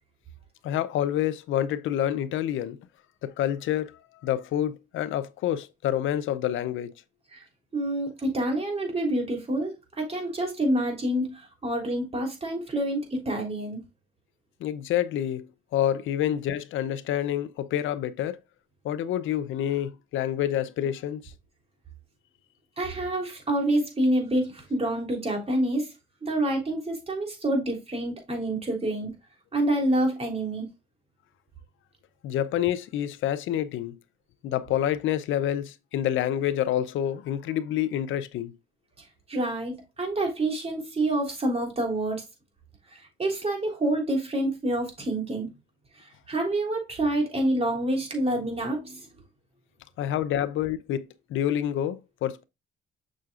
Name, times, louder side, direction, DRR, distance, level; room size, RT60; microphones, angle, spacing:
voice 1, 0.6-2.8 3.2-4.0 4.2-6.9 14.6-18.4 18.8-21.3 32.2-34.0 34.4-38.6 50.0-52.4, left 11 dB, 80° left, 0.6 m, -28 dB
voice 2, 7.7-13.8 22.8-25.9 26.2-29.1 29.5-30.7 39.3-42.2 42.9-45.5 46.0-49.1, right 1 dB, 30° right, 3.4 m, -27 dB
6.5 x 6.3 x 2.4 m
cardioid pair, 90°, 20 cm